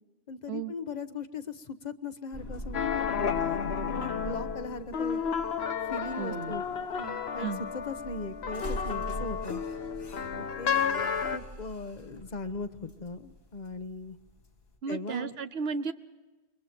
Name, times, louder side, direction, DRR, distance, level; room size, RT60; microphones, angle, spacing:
voice 1, 0.3-3.0 3.4-3.6 3.9-5.2 5.8-6.7 7.0-7.5 7.7-9.6 10.3-11.0 11.3-14.2 14.9-15.3, left 3 dB, 45° left, 11 dB, 1.1 m, -39 dB
sound 1, 2.3-14.8, equal, 70° left, 2.6 m, -43 dB
sound 2, 2.7-11.4, left 7 dB, 90° left, 1.2 m, -32 dB
voice 2, 6.2-6.6 7.4-7.6 14.8-15.9, right 5 dB, 90° right, 10 dB, 1.1 m, -34 dB
27.0 x 22.5 x 4.5 m, 1.2 s
omnidirectional pair, 1.0 m